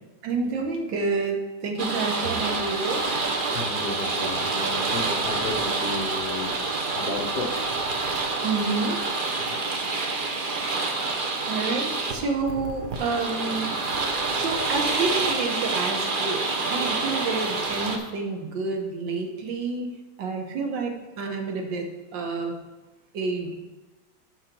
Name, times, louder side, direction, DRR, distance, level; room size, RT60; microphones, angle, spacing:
voice 1, 0.2-3.1 8.4-9.0 11.5-13.7 14.4-19.9 20.2-21.9 22.1-22.6 23.1-23.5, right 3 dB, 75° right, 3 dB, 1.8 m, -29 dB
sound 1, 1.8-18.0, right 3 dB, 50° right, 0.6 m, -27 dB
voice 2, 3.5-6.6 6.9-7.6 9.5-9.6, left 3 dB, 50° left, -1 dB, 0.6 m, -33 dB
6.4 x 5.9 x 5.9 m, 1.2 s
omnidirectional pair, 2.0 m